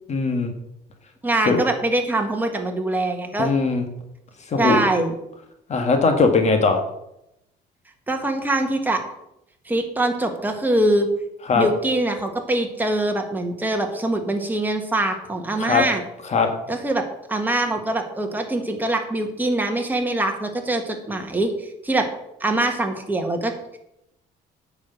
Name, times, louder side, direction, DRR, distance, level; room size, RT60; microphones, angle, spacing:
voice 1, 0.1-0.5 1.5-1.6 3.4-3.9 4.5-4.8 5.7-6.8 11.5-11.7 15.6-15.8 16.3-16.5, left 4 dB, 40° left, 5 dB, 1.7 m, -19 dB
voice 2, 1.2-3.5 4.6-5.1 8.1-9.0 9.7-11.1 11.5-16.0 16.7-17.0 17.3-22.1 22.4-23.8, right 2 dB, 10° right, 3 dB, 1.7 m, -23 dB
9.4 x 5.0 x 7.7 m, 0.83 s
cardioid pair, 110°, 17 cm